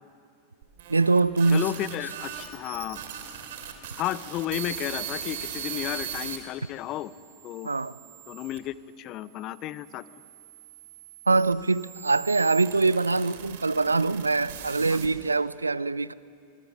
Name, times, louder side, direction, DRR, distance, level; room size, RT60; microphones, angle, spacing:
sound 1, 0.6-6.4 7.0-8.6 9.4-15.4, right 9 dB, 55° right, 2.7 m, -40 dB
voice 1, 0.9-1.7 7.6-8.0 11.3-16.1, right 3 dB, 80° right, 0.5 m, -23 dB
voice 2, 1.5-3.0 4.0-7.1 7.4-7.7 8.3-10.0 14.9-15.0, left 13 dB, 35° left, 0.6 m, -33 dB
25.5 x 20.5 x 6.7 m
figure-of-eight pair, 90°, 0 cm